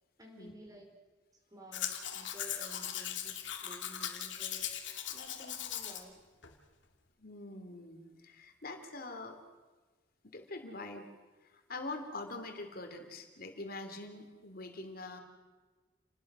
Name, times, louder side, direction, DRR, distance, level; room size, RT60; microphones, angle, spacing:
voice 1, 0.2-0.9 1.5-4.7 5.1-6.2, equal, 20° right, 2 dB, 5.0 m, -53 dB
Domestic sounds home sounds, 1.7-6.0 6.4-6.5, left 10 dB, 70° left, 2.4 m, -39 dB
voice 2, 7.2-9.4 10.2-11.1 11.4-15.2, left 2 dB, 50° left, 6 dB, 3.2 m, -44 dB
29.5 x 20.0 x 6.3 m, 1.3 s
head